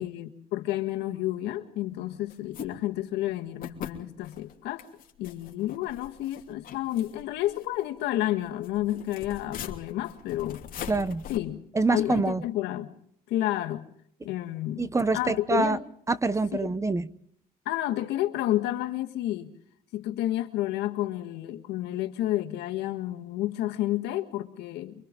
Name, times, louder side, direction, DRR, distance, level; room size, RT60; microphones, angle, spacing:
voice 1, 0.0-4.9 5.2-10.6 11.3-11.6 11.9-12.9 13.3-13.8 14.2-14.9 15.1-15.8 16.6-16.7 17.6-19.5 19.9-24.9, left 14 dB, 85° left, 6 dB, 1.8 m, -30 dB
sound 1, 2.3-2.7 3.1-3.2 3.6-3.9 4.2-4.5 4.8-8.0 8.5-11.4, left 9 dB, 55° left, 3.0 m, -41 dB
voice 2, 10.9-11.2 11.7-12.4 14.8-15.8 16.1-17.1, right 3 dB, 15° right, 15 dB, 0.8 m, -25 dB
29.0 x 24.5 x 3.8 m, 0.69 s
cardioid pair, 110°, 17 cm